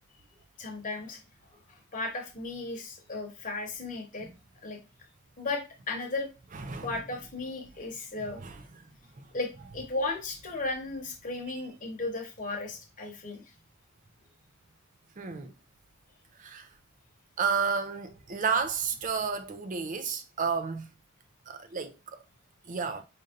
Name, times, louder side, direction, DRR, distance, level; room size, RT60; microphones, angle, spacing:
voice 1, 0.6-1.2 1.5-4.3 4.6-4.8 5.4-6.3 6.8-8.4 9.3-13.4, left 2 dB, 35° left, 1.0 m, -35 dB
voice 2, 15.2-15.5 16.4-16.7 17.4-20.9 21.5-21.9 22.7-23.0, right 5 dB, 35° right, 0.4 m, -31 dB
5.1 x 2.6 x 2.6 m
head